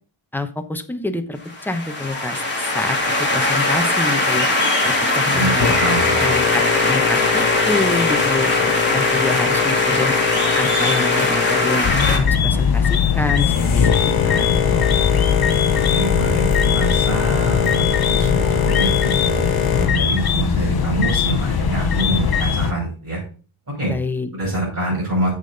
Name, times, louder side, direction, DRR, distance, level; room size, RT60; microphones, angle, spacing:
voice 1, 0.3-4.5 4.8-5.7 6.2-10.1 10.6-13.9 14.2-14.6 23.9-24.3, left 2 dB, 5° left, 7 dB, 0.8 m, -27 dB
sound 1, 1.5-12.2, left 2 dB, 20° left, 2.6 m, -20 dB
voice 2, 5.3-6.3 15.9-23.2 23.8-23.9 24.3-25.3, right 2 dB, 35° right, -6 dB, 5.4 m, -25 dB
Boat Water vehicle, 5.6-19.9, left 7 dB, 70° left, 1.6 m, -23 dB
sound 2, 11.8-22.7, left 7 dB, 45° left, 0.8 m, -20 dB
8.8 x 6.8 x 4.0 m, 0.38 s
wide cardioid pair, 135°, 50 cm